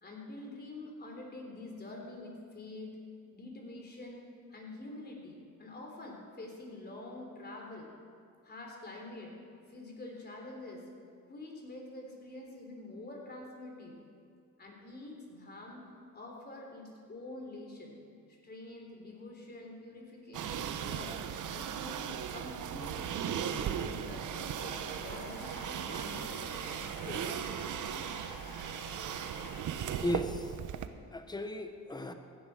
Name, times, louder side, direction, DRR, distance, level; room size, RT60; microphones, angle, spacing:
voice 1, 0.0-3.0 3.3-4.2 4.5-7.9 8.4-9.3 9.7-10.8 11.3-14.0 14.6-15.9 16.1-18.0 18.4-21.1 21.5-25.5 25.8-27.3, left 2 dB, 30° left, 0 dB, 3.5 m, -46 dB
sound 1, 20.3-30.9, right 9 dB, 65° right, 0.8 m, -37 dB
sound 2, 24.6-29.6, left 6 dB, 85° left, 1.3 m, -51 dB
voice 2, 29.8-30.6 31.1-32.1, left 1 dB, 10° left, 7 dB, 1.0 m, -36 dB
16.0 x 11.0 x 5.0 m, 2.3 s
cardioid pair, 105°, 33 cm